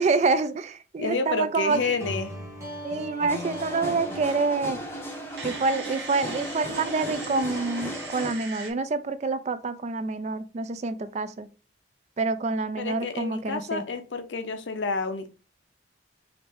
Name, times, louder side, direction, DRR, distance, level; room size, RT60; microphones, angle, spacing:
voice 1, 0.0-1.8 2.8-4.8 5.4-11.5 12.2-13.8, right 3 dB, 35° right, 0.3 m, -27 dB
voice 2, 1.0-2.3 12.8-15.3, left 4 dB, 80° left, 0.6 m, -29 dB
sound 1, 1.7-4.9, right 1 dB, 15° right, 1.0 m, -38 dB
sound 2, 3.3-8.3, equal, 15° left, 0.6 m, -36 dB
sound 3, 3.3-8.7, right 4 dB, 85° right, 1.1 m, -41 dB
5.1 x 2.6 x 3.3 m
head